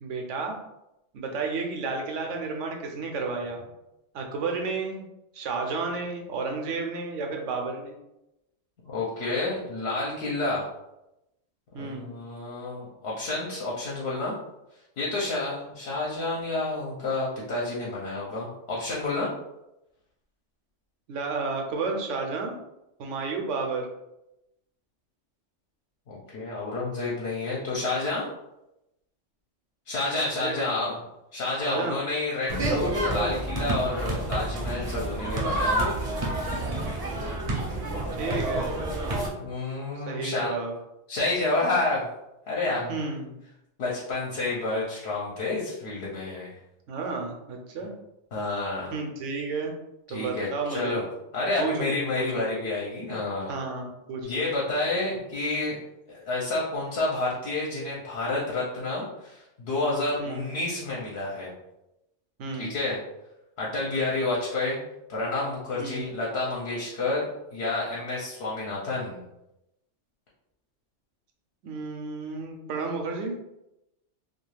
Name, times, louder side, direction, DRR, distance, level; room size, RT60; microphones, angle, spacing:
voice 1, 0.0-0.6 1.1-3.7 4.1-5.0 5.3-8.0 11.7-12.1 21.1-22.5 23.0-23.9 30.4-30.7 31.7-32.0 38.2-38.7 40.1-40.7 42.9-43.3 46.9-48.0 48.9-49.7 50.1-51.0 51.6-51.9 52.1-52.3 53.5-54.4 60.2-60.4 62.4-62.7 65.8-66.0 71.6-73.3, right 4 dB, 80° right, 2 dB, 0.9 m, -32 dB
voice 2, 8.8-10.6 11.8-14.3 15.0-19.3 26.1-28.2 29.9-31.0 31.3-35.8 39.1-40.5 41.1-42.0 42.5-42.9 43.8-46.6 48.3-48.9 50.1-51.0 51.3-53.5 54.2-55.8 56.1-61.5 62.6-63.0 63.6-64.8 65.1-67.2 67.5-69.2, left 2 dB, 65° left, -5 dB, 0.8 m, -29 dB
sound 1, 32.5-39.3, right 1 dB, 40° right, 0.6 m, -28 dB
2.4 x 2.3 x 3.1 m, 0.90 s
omnidirectional pair, 1.3 m